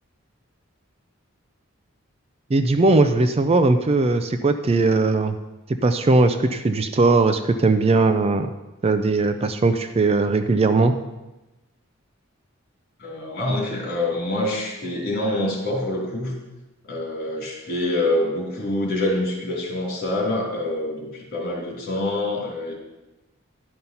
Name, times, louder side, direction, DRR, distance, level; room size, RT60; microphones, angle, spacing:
voice 1, 2.5-5.4 5.8-8.5 8.8-10.9, right 3 dB, 30° right, 9 dB, 0.4 m, -19 dB
voice 2, 13.0-16.4 16.8-22.7, left 1 dB, 50° left, -2 dB, 2.9 m, -26 dB
11.0 x 5.4 x 5.8 m, 1.0 s
head